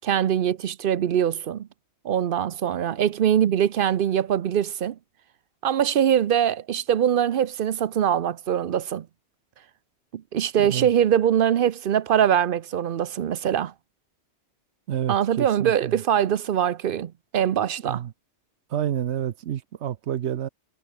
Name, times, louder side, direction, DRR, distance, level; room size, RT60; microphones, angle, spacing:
voice 1, 0.0-1.7 2.0-5.0 5.6-9.1 10.1-13.7 15.1-18.0, right 9 dB, 60° right, 0.8 m, -23 dB
voice 2, 10.6-10.9 14.9-16.0 17.8-18.1 18.7-20.5, right 10 dB, 80° right, 1.0 m, -29 dB
omnidirectional pair, 1.1 m